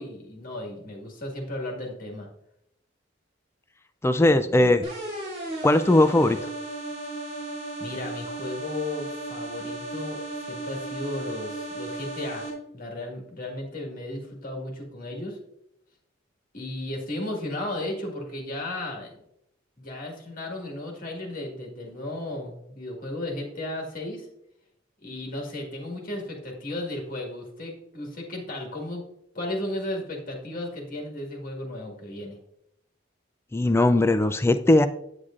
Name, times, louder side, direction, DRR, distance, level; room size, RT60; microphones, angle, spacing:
voice 1, 0.0-2.3 7.8-12.4 12.7-15.4 16.5-19.2 19.8-24.3 25.0-29.0 29.3-32.4, left 1 dB, 45° left, 0 dB, 1.8 m, -34 dB
voice 2, 4.0-4.9 5.6-6.4 33.5-34.9, left 1 dB, 15° left, 10 dB, 0.3 m, -19 dB
sound 1, 4.8-12.5, right 2 dB, 35° right, 2.6 m, -35 dB
8.6 x 8.0 x 2.5 m, 0.77 s
head